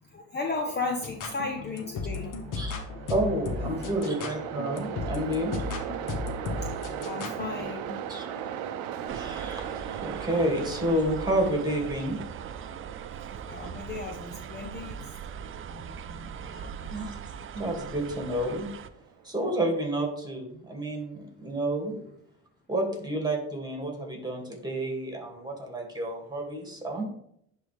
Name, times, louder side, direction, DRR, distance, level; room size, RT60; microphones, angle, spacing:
voice 1, 0.1-2.6 2.9-3.0 5.1-5.2 7.0-8.0 13.3-15.2 15.5-17.1, left 3 dB, 25° left, 2 dB, 0.9 m, -36 dB
sound 1, 1.0-7.7, left 4 dB, 50° left, 1.3 m, -36 dB
Train, 2.2-19.4, right 9 dB, 80° right, 0.8 m, -39 dB
voice 2, 3.1-5.6 8.1-8.4 9.1-12.2 16.9-17.1 17.5-18.7 19.2-21.9 22.7-27.0, right 1 dB, 10° right, 2 dB, 2.3 m, -30 dB
sound 2, 9.1-18.9, right 7 dB, 35° right, 0.5 m, -41 dB
10.5 x 3.7 x 3.4 m, 0.72 s
supercardioid pair, 90°, 39 cm